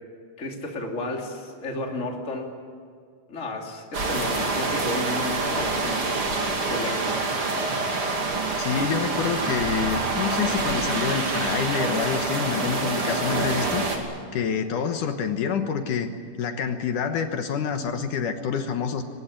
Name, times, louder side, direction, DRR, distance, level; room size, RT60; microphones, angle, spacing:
voice 1, 0.4-2.5 3.3-7.2, left 2 dB, 20° left, 1 dB, 2.7 m, -33 dB
sound 1, 3.9-14.0, right 3 dB, 40° right, 3.4 m, -26 dB
voice 2, 8.6-14.0 14.3-16.1 16.4-19.0, left 7 dB, 70° left, 6 dB, 2.6 m, -27 dB
22.5 x 20.0 x 9.9 m, 2.2 s
omnidirectional pair, 4.1 m